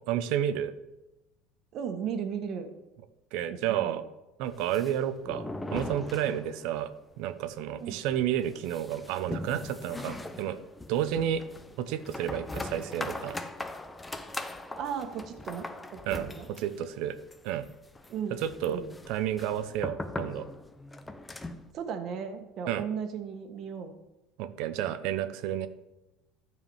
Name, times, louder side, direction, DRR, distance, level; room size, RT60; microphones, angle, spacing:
voice 1, 0.1-0.7 3.3-4.0 4.4-5.4 5.7-10.6 10.9-11.4 11.8-13.4 16.1-17.2 17.4-17.6 18.3-18.8 19.1-20.5 22.7-22.8 24.4-25.7, right 10 dB, 65° right, 12 dB, 0.9 m, -31 dB
voice 2, 1.7-2.7 3.5-4.0 7.8-8.0 14.7-16.0 16.3-16.5 18.1-19.0 21.7-23.9, right 7 dB, 50° right, 7 dB, 1.6 m, -36 dB
sound 1, 4.5-6.9 7.1-7.2 7.5-7.6 8.1-21.7, left 2 dB, 10° left, 0.7 m, -40 dB
13.0 x 4.8 x 7.3 m, 0.99 s
supercardioid pair, 125°, 0 cm